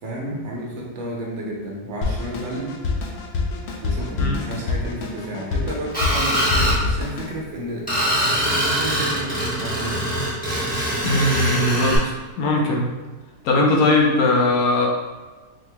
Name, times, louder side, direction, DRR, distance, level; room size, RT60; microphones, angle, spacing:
voice 1, 0.0-2.8 3.8-7.8 8.1-10.1, right 1 dB, 55° right, -2 dB, 0.9 m, -31 dB
Drum kit, 2.0-7.3, left 3 dB, 90° left, 0.5 m, -26 dB
Screech, 5.9-6.8 7.9-12.0, equal, 5° left, 1.3 m, -23 dB
voice 2, 11.0-12.1 12.4-12.8 13.4-14.9, left 2 dB, 70° left, -1 dB, 1.1 m, -19 dB
4.2 x 2.9 x 2.2 m, 1.2 s
omnidirectional pair, 1.7 m